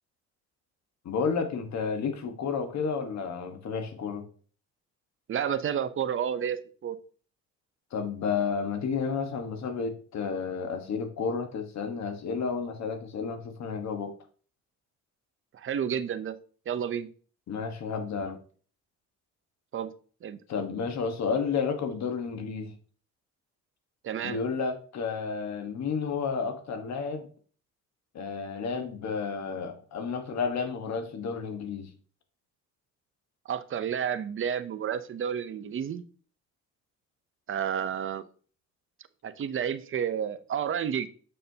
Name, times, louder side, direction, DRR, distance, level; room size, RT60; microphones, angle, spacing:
voice 1, 1.0-4.2 7.9-14.1 17.5-18.4 20.5-22.7 24.2-27.3 28.1-31.9, left 5 dB, 65° left, 6 dB, 1.3 m, -31 dB
voice 2, 5.3-7.0 15.5-16.4 16.7-17.1 19.7-19.9 20.2-20.4 24.0-24.4 33.5-36.0 37.5-38.2 39.2-41.1, right 8 dB, 45° right, 12 dB, 0.6 m, -30 dB
6.6 x 6.5 x 2.8 m, 0.43 s
cardioid pair, 90°, 30 cm